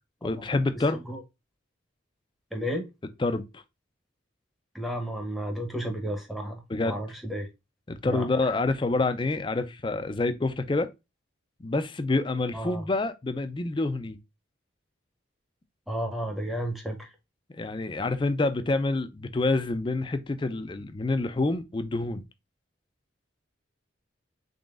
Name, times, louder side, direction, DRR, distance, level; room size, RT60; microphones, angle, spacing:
voice 1, 0.2-1.0 3.2-3.6 6.7-7.0 7.9-10.9 11.6-14.2 17.5-22.2, left 2 dB, 25° left, 0.4 m, -27 dB
voice 2, 2.5-2.9 4.7-7.5 8.0-8.6 12.5-12.8 15.9-17.1, equal, ahead, 0.8 m, -33 dB
3.8 x 3.6 x 2.4 m
head